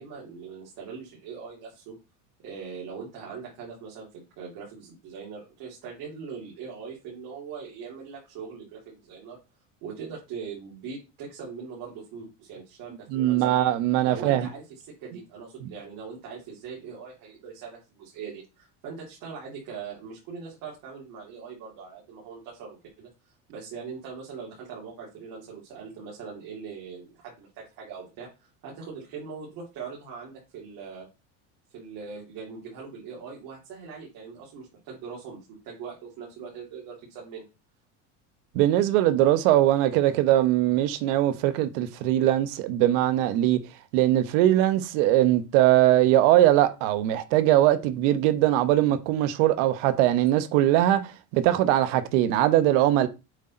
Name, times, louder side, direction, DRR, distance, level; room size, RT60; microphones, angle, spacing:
voice 1, 0.0-1.9 2.4-9.4 9.8-13.4 14.0-23.1 23.5-31.1 31.7-35.4 35.6-37.4, right 5 dB, 60° right, 3.2 m, -41 dB
voice 2, 13.1-14.5 38.5-43.6 43.9-53.1, right 13 dB, 75° right, 1.1 m, -21 dB
8.0 x 4.0 x 4.3 m
cardioid pair, 140°, 37 cm